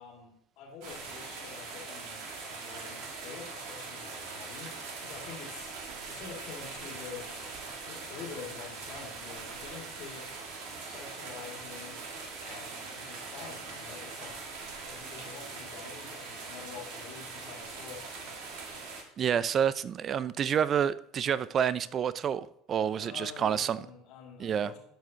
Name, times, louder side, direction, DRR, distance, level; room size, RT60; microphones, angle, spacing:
voice 1, 0.0-2.2 2.5-5.7 6.1-10.3 10.8-12.1 12.4-18.1 22.9-24.8, left 6 dB, 60° left, 2.3 m, -47 dB
sound 1, 0.8-19.0, right 4 dB, 65° right, 1.9 m, -42 dB
voice 2, 19.2-23.8 24.4-24.7, right 8 dB, 40° right, 0.4 m, -28 dB
12.5 x 4.9 x 2.8 m
hypercardioid pair, 80°, 0 cm